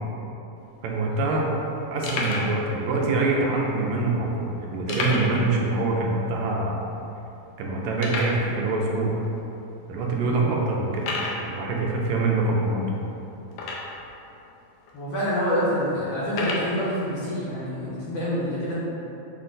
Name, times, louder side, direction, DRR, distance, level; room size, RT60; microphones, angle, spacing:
sound 1, 0.6-0.7 0.8-1.0 1.5-1.6 2.0-2.6 3.3-3.4 4.9-5.5 5.8-5.9 6.3-6.4 7.0-7.1 8.0-8.4 9.2-9.3 9.9-10.0 11.0-11.4 13.5-14.1 14.9-15.0 16.3-16.7, left 3 dB, 80° left, 1.4 m, -30 dB
voice 1, 0.8-1.5 1.9-6.8 7.6-9.2 9.9-11.1 11.4-12.9, right 2 dB, 85° right, -2 dB, 1.9 m, -25 dB
voice 2, 14.9-18.7, equal, 65° left, -10 dB, 1.6 m, -27 dB
6.0 x 2.2 x 3.8 m, 2.9 s
omnidirectional pair, 3.3 m